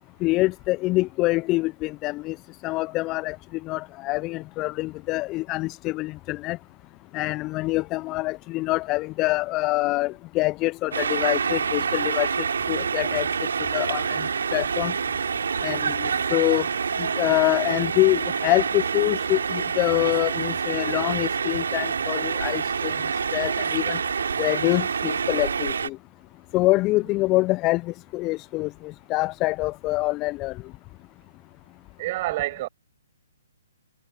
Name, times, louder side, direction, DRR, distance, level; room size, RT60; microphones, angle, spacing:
voice 1, 0.2-2.4 2.6-6.6 7.1-13.3 13.6-14.9 15.6-16.7 17.0-23.0 23.3-24.0 24.4-26.0 26.5-30.6, left 20 dB, 25° left, 0.5 m, -25 dB
sound 1, 10.9-25.9, right 6 dB, 65° right, 3.1 m, -27 dB
voice 2, 32.0-32.7, right 17 dB, 35° right, 6.6 m, -27 dB
figure-of-eight pair, 130°, 0 cm